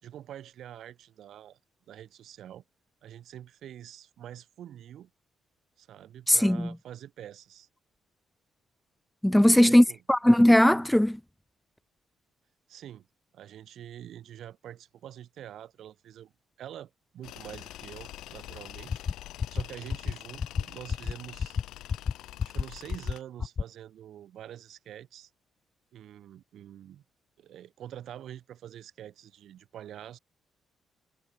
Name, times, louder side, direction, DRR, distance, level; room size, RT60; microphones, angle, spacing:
voice 1, 0.0-1.6 1.9-2.6 3.0-5.1 5.8-7.7 9.3-10.0 12.7-13.1 13.3-16.3 16.6-19.0 19.5-21.6 22.4-25.3 25.9-27.0 27.4-30.2, right 11 dB, 70° right, 4.2 m, -46 dB
voice 2, 6.3-6.7 9.2-11.2, left 1 dB, 5° left, 0.7 m, -19 dB
Tools, 17.2-23.2, left 14 dB, 85° left, 1.2 m, -45 dB
sound 1, 18.9-19.1 19.4-19.6 19.9-20.1 20.4-20.6 20.9-21.1 21.4-21.6 21.9-22.1 22.4-22.6 22.9-23.1 23.4-23.6, left 6 dB, 40° left, 1.0 m, -28 dB
cardioid pair, 90°, 0 cm